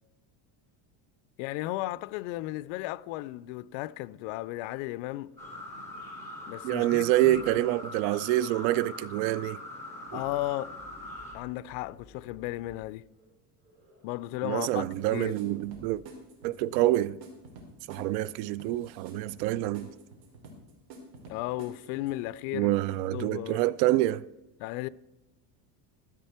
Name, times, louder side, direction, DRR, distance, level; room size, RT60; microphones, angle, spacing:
voice 1, 1.4-5.3 6.5-7.4 10.1-10.7 11.3-13.0 14.0-15.3 21.3-22.7 23.1-23.6 24.6-24.9, left 17 dB, 70° left, 0.6 m, -35 dB
sound 1, 5.1-5.6 5.9-6.0 6.3-7.7 8.0-8.5 8.8-8.9 9.2-12.8 13.1-13.2 13.6-14.1 14.3-14.5 14.8-16.0, equal, 20° right, 3.9 m, -58 dB
sound 2, 5.4-11.3, left 1 dB, 5° left, 2.7 m, -42 dB
voice 2, 6.6-9.6 10.1-10.2 14.4-16.0 16.4-17.2 17.9-19.9 22.5-24.3, right 15 dB, 90° right, 0.5 m, -27 dB
sound 3, 14.9-22.3, right 2 dB, 75° right, 3.1 m, -49 dB
13.5 x 8.0 x 4.4 m
cardioid pair, 155°, 47 cm